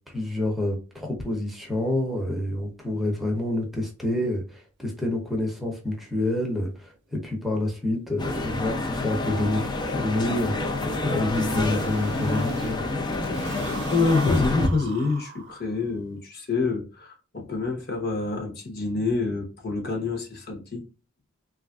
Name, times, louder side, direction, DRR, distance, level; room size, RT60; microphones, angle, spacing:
voice 1, 0.1-12.8, left 1 dB, ahead, 0.7 m, -28 dB
sound 1, 5.9-6.0 6.3-6.4 6.7-6.8 7.1-7.3 7.5-12.7 13.1-15.9, right 4 dB, 50° right, 0.4 m, -42 dB
sound 2, 8.2-14.7, left 2 dB, 20° left, 0.3 m, -28 dB
sound 3, 8.3-14.2, left 6 dB, 90° left, 0.4 m, -39 dB
voice 2, 13.9-20.9, left 3 dB, 45° left, 0.8 m, -27 dB
3.2 x 2.4 x 2.2 m
head